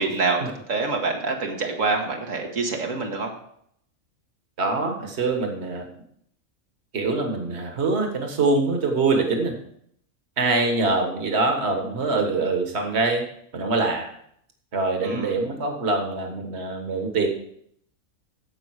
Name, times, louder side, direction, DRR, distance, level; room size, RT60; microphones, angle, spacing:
voice 1, 0.0-3.3 15.0-15.3, right 3 dB, 80° right, 1 dB, 1.8 m, -26 dB
voice 2, 4.6-5.9 6.9-9.5 10.4-13.2 13.5-14.1 14.7-17.3, right 3 dB, 55° right, 3 dB, 1.8 m, -24 dB
15.5 x 5.4 x 4.8 m, 0.69 s
omnidirectional pair, 1.3 m